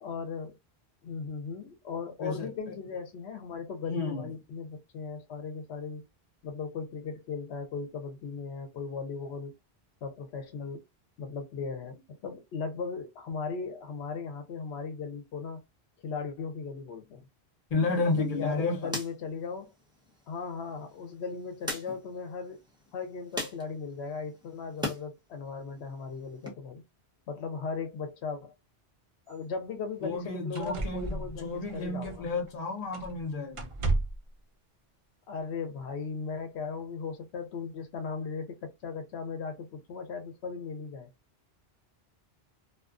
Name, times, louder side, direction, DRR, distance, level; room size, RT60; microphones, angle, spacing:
voice 1, 0.0-0.6 1.0-6.0 6.4-9.5 10.0-10.8 11.2-15.6 16.0-17.2 18.1-19.7 20.3-22.6 22.9-26.8 27.3-28.5 29.3-32.3 35.3-41.1, left 5 dB, 85° left, 0.9 m, -37 dB
voice 2, 2.2-2.8 3.9-4.3 17.7-18.9 30.0-33.6, left 3 dB, 45° left, 0.7 m, -31 dB
sound 1, 17.8-25.0 25.4-26.5, left 1 dB, 5° right, 0.7 m, -42 dB
sound 2, 29.3-29.4 30.0-30.1 30.5-32.5 32.9-33.2 33.5-34.3 35.4-35.5, right 2 dB, 45° right, 0.4 m, -34 dB
2.4 x 2.2 x 2.4 m
omnidirectional pair, 1.1 m